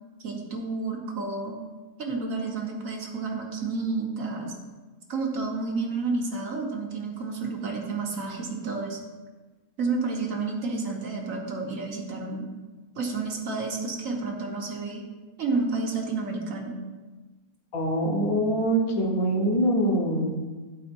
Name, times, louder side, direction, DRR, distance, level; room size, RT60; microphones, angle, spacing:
voice 1, 0.2-1.6 2.0-4.5 5.1-9.0 9.8-12.5 12.9-15.1 15.4-16.8, right 3 dB, 60° right, 0 dB, 1.3 m, -30 dB
voice 2, 17.7-20.3, right 1 dB, 60° left, -1 dB, 1.6 m, -24 dB
10.5 x 4.1 x 4.4 m, 1.3 s
omnidirectional pair, 1.7 m